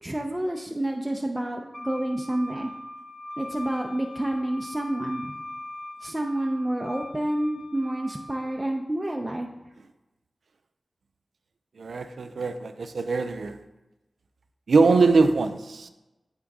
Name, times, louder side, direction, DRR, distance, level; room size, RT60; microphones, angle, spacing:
voice 1, 0.0-2.7 3.4-5.3 6.0-9.5, right 1 dB, 20° right, 0.6 m, -29 dB
Wind instrument woodwind instrument, 1.7-8.5, left 1 dB, 30° left, 1.1 m, -41 dB
voice 2, 11.8-13.6 14.7-15.9, right 4 dB, 85° right, 0.4 m, -22 dB
8.6 x 3.7 x 3.5 m
cardioid pair, 40°, 0 cm